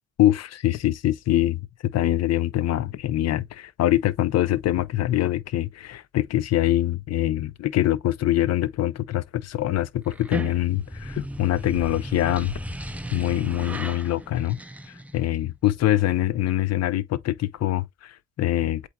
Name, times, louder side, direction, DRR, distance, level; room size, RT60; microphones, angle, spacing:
voice 1, 0.2-12.5 13.1-14.6 14.9-18.9, left 14 dB, 60° left, 0.5 m, -24 dB
sound 1, 10.1-15.4, right 1 dB, 5° right, 0.5 m, -36 dB
8.1 x 3.0 x 2.2 m
cardioid pair, 90°, 30 cm